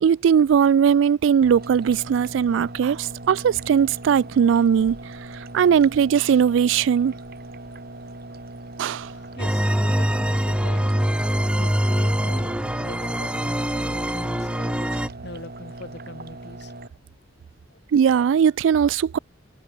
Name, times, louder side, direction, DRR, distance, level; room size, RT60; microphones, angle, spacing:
voice 1, 0.0-5.0 5.5-7.1 8.8-9.1 17.9-19.2, right 7 dB, 70° right, 0.3 m, -19 dB
sound 1, 1.4-16.9, right 2 dB, 50° right, 2.9 m, -39 dB
voice 2, 9.1-11.1 11.6-16.9 17.7-17.8, left 1 dB, 60° left, 4.8 m, -42 dB
sound 2, 9.4-15.1, equal, 5° right, 1.0 m, -23 dB
head